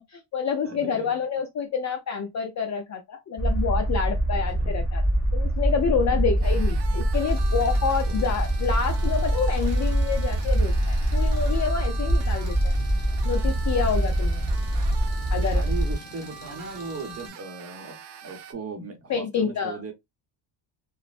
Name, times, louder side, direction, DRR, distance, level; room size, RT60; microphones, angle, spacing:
voice 1, 0.1-5.0 5.3-12.7 13.2-14.5 15.3-15.6 19.1-19.8, left 6 dB, 40° left, 0.4 m, -28 dB
voice 2, 0.6-1.1 4.6-4.7 6.1-6.2 6.5-6.6 8.1-8.3 15.5-19.9, right 4 dB, 30° right, 0.8 m, -37 dB
sound 1, 3.4-15.9, right 1 dB, 5° left, 1.2 m, -24 dB
sound 2, 6.4-18.5, right 8 dB, 60° right, 0.6 m, -43 dB
Engine, 7.3-17.3, left 4 dB, 55° left, 1.0 m, -47 dB
3.1 x 2.0 x 2.4 m
cardioid pair, 125°, 49 cm